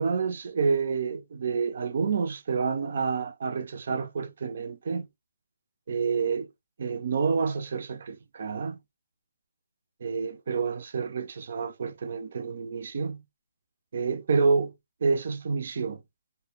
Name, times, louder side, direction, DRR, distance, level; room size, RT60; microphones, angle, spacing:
voice 1, 0.0-5.1 5.9-6.5 6.8-8.8 10.0-13.2 13.9-14.7 15.0-16.0, right 5 dB, 55° right, 0.5 m, -28 dB
2.2 x 2.1 x 3.3 m
hypercardioid pair, 155°, 0 cm